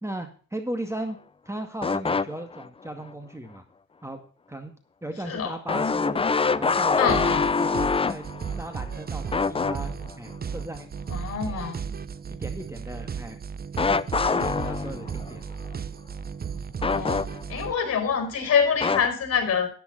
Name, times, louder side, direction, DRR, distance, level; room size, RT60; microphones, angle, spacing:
voice 1, 0.0-1.2 1.5-3.6 4.0-4.2 4.5-4.7 5.0-6.3 6.6-8.3 8.6-10.9 11.4-11.6 12.4-13.4 13.8-15.4 15.7-15.8, right 1 dB, 10° right, 6 dB, 2.1 m, -37 dB
sound 1, 1.8-2.7 3.1-3.2 5.7-8.9 9.3-10.1 13.8-15.3 16.8-17.7 18.8-19.1, left 4 dB, 20° left, 0.5 m, -25 dB
voice 2, 5.2-5.6 7.0-7.5 11.1-11.9 16.8-17.2 17.5-19.7, left 7 dB, 55° left, 6 dB, 5.0 m, -26 dB
sound 2, 7.1-17.7, right 6 dB, 30° right, 0.7 m, -35 dB
11.5 x 10.5 x 4.1 m, 0.40 s
cardioid pair, 90°, 30 cm